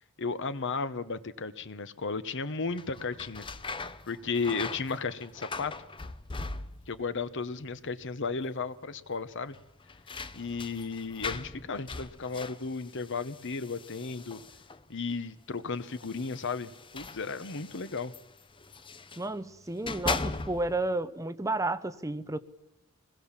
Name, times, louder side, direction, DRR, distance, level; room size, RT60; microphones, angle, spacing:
voice 1, 0.2-3.5 4.1-5.7 6.9-9.6 10.3-14.4 14.9-18.1, left 4 dB, 60° left, 13 dB, 1.1 m, -34 dB
sound 1, 2.7-7.1 7.3-8.0 8.3-8.4 9.5-14.9 15.8-19.3 19.7-20.9, left 3 dB, 25° left, 0.8 m, -40 dB
voice 2, 19.2-22.4, right 2 dB, 15° right, 12 dB, 0.7 m, -32 dB
24.5 x 20.5 x 7.4 m, 0.89 s
head